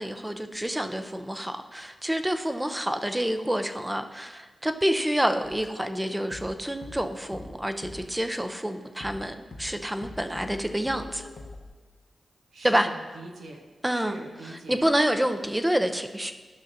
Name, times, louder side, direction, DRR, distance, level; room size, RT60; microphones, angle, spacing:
voice 1, 0.0-11.3 12.6-12.9 13.8-14.2 14.7-16.3, equal, 10° right, 8 dB, 0.6 m, -28 dB
sound 1, 5.4-8.6 9.0-11.7, left 2 dB, 60° left, 1.1 m, -44 dB
voice 2, 12.5-13.6 13.9-14.9, right 2 dB, 85° right, 1 dB, 0.9 m, -43 dB
12.5 x 5.6 x 2.7 m, 1.3 s
cardioid pair, 50°, 0 cm